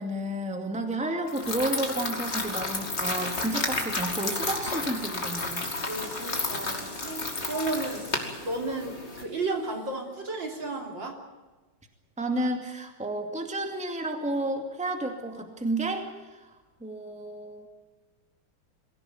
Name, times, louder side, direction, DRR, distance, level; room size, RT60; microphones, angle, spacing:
voice 1, 0.0-5.7 12.2-16.5 16.8-17.7, right 1 dB, 5° right, 4 dB, 2.2 m, -31 dB
sound 1, 1.0-7.9, left 7 dB, 60° left, 1.9 m, -46 dB
sound 2, 1.3-9.2, left 3 dB, 30° left, 2.8 m, -32 dB
sound 3, 4.6-10.8, right 1 dB, 35° right, 6.5 m, -49 dB
voice 2, 5.9-8.1 8.4-11.2, right 2 dB, 60° right, 2 dB, 3.9 m, -33 dB
24.0 x 16.0 x 9.3 m, 1.2 s
omnidirectional pair, 2.3 m